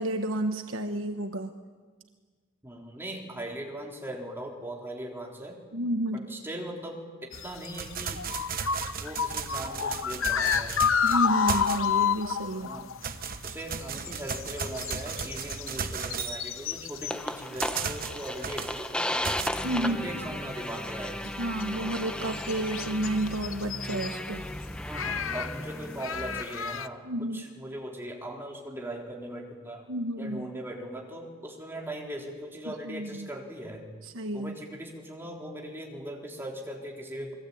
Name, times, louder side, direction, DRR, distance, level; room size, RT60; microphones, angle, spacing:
voice 1, 0.0-1.5 5.7-6.3 11.0-12.7 19.6-20.3 21.4-24.4 27.0-27.4 29.9-30.5 32.8-33.3 34.0-34.5, right 1 dB, 70° right, 6 dB, 1.3 m, -31 dB
voice 2, 2.6-5.6 6.1-8.2 9.0-10.8 12.6-12.9 13.4-19.3 19.8-21.2 24.9-29.9 30.2-33.9 34.3-37.3, right 1 dB, 10° right, -1 dB, 3.9 m, -39 dB
sound 1, 7.3-13.0 13.3-13.4 13.6-17.5 17.7-18.7 19.1-19.7 20.1-20.2 21.3-21.4 21.6-21.7 22.1-24.2 24.9-26.9, left 7 dB, 70° left, 0.9 m, -30 dB
sound 2, 7.3-12.2 12.6-19.5, right 6 dB, 40° right, 1.1 m, -36 dB
sound 3, 17.1-26.4, left 1 dB, 5° left, 0.9 m, -35 dB
29.0 x 22.0 x 8.7 m, 1.5 s
head